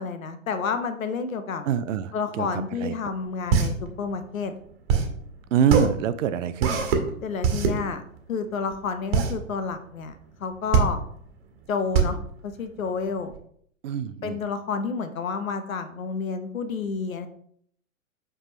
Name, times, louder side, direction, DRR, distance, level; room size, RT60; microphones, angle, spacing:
voice 1, 0.0-1.6 2.1-4.5 7.2-8.0 8.3-11.0 11.7-12.2 12.4-13.3 14.2-17.3, left 5 dB, 70° left, 9 dB, 0.8 m, -30 dB
voice 2, 1.7-2.5 2.8-2.9 5.5-6.9 13.8-14.4, right 8 dB, 65° right, 12 dB, 0.6 m, -25 dB
sound 1, 3.0-13.4, right 6 dB, 45° right, 1.4 m, -24 dB
7.6 x 4.8 x 3.1 m, 0.64 s
figure-of-eight pair, 110°, 42 cm